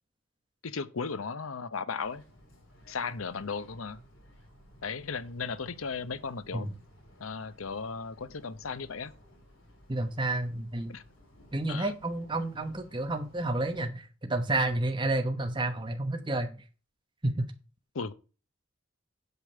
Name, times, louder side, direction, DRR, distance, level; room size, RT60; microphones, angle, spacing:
voice 1, 0.6-2.2 2.9-4.0 4.8-6.7 7.2-9.1 10.9-11.0 11.7-11.9 17.9-18.1, left 5 dB, 90° left, 0.8 m, -36 dB
sound 1, 2.0-13.8, equal, 75° left, 4.9 m, -57 dB
voice 2, 9.9-10.9 11.5-16.5 17.2-17.5, right 2 dB, 25° right, 1.0 m, -30 dB
8.2 x 5.2 x 6.5 m
head